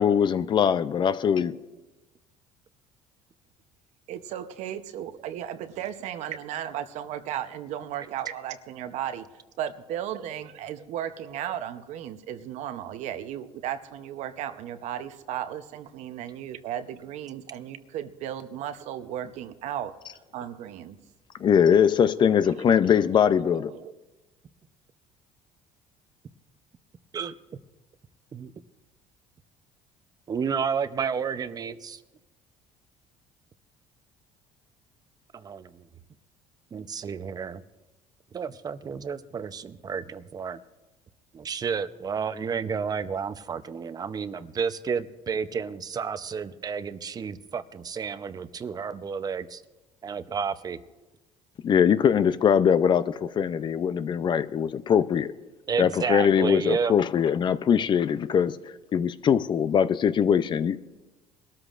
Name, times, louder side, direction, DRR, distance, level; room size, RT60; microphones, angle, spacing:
voice 1, 0.0-1.5 21.4-23.7 51.6-55.3 55.8-58.6 58.9-60.8, left 8 dB, 40° left, 0.5 m, -22 dB
voice 2, 4.1-9.3 9.6-21.0 22.4-22.5 22.8-23.2 23.7-24.0, right 10 dB, 65° right, 0.8 m, -35 dB
voice 3, 30.3-32.0 35.3-35.9 36.7-37.6 38.3-40.6 41.3-49.6 50.0-50.8 55.7-56.9, right 6 dB, 30° right, 0.7 m, -31 dB
22.5 x 13.0 x 2.5 m
cardioid pair, 105°, 13 cm